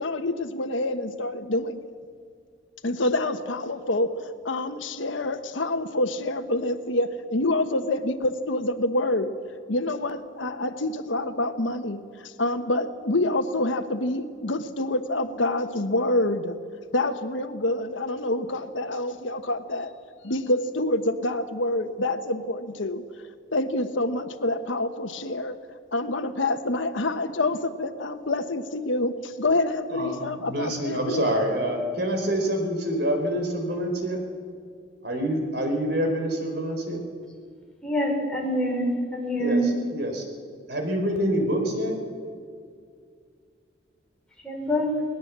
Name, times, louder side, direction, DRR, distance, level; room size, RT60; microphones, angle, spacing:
voice 1, 0.0-1.8 2.8-4.1 4.4-9.3 9.7-16.6 16.9-19.9 20.2-23.0 23.5-25.6 25.9-31.3, left 2 dB, 85° left, 8 dB, 1.2 m, -27 dB
voice 2, 29.9-34.3 35.0-37.0 39.4-40.2 40.7-42.0, equal, 60° right, 3 dB, 4.4 m, -26 dB
voice 3, 37.8-39.7 44.4-44.9, equal, 5° left, -2 dB, 5.1 m, -25 dB
21.0 x 19.5 x 7.5 m, 2.2 s
head